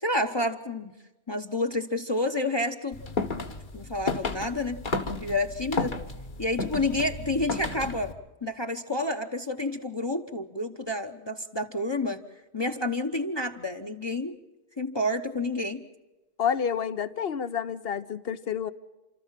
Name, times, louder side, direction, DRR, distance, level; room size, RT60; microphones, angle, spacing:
voice 1, 0.0-0.9 1.3-3.0 3.7-4.8 5.2-6.0 6.4-8.1 8.4-12.2 12.5-14.3 14.8-15.8, left 1 dB, 25° left, 0.9 m, -29 dB
sound 1, 2.9-8.1, left 3 dB, 50° left, 1.5 m, -33 dB
voice 2, 16.4-18.7, left 8 dB, 65° left, 1.1 m, -29 dB
30.0 x 13.5 x 7.4 m
omnidirectional pair, 1.1 m